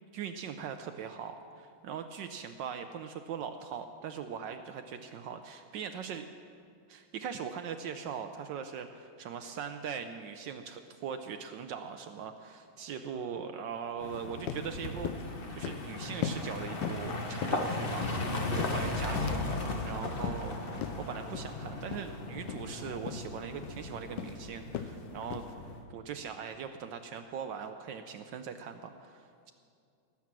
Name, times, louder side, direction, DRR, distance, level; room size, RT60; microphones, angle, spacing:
voice 1, 0.1-6.3 6.9-18.1 18.5-25.5 25.9-29.5, right 7 dB, 75° right, 7 dB, 1.3 m, -41 dB
sound 1, 14.0-25.8, left 2 dB, 35° left, 1.1 m, -37 dB
sound 2, 14.1-14.2 14.5-14.7 15.0-15.3 15.6-15.9 16.2-16.5 16.8-17.1 17.4-18.2 18.6-19.4 19.7-19.9 20.2-20.5 20.8-21.0 21.3-21.5 21.9-22.1 22.4-22.6 23.1-23.3 23.6-23.9 24.2-24.4 24.7-25.0 25.3-25.5, left 9 dB, 75° left, 1.2 m, -37 dB
19.0 x 8.5 x 6.1 m, 2.4 s
omnidirectional pair, 2.1 m